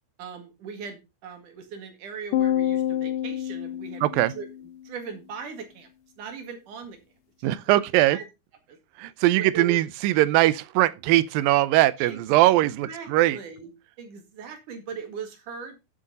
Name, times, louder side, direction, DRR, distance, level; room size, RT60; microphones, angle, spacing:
voice 1, 0.2-4.0 4.3-4.5 4.8-5.9 6.2-7.0 7.4-8.3 8.7-8.8 9.5-9.8 12.0-12.2 12.8-13.7 14.0-15.8, right 6 dB, 65° right, 3.4 m, -39 dB
sound 1, 2.3-4.8, left 11 dB, 75° left, 2.2 m, -27 dB
voice 2, 4.0-4.3 7.4-8.2 9.0-13.4, right 16 dB, 85° right, 2.4 m, -21 dB
9.9 x 8.0 x 4.1 m
omnidirectional pair, 4.1 m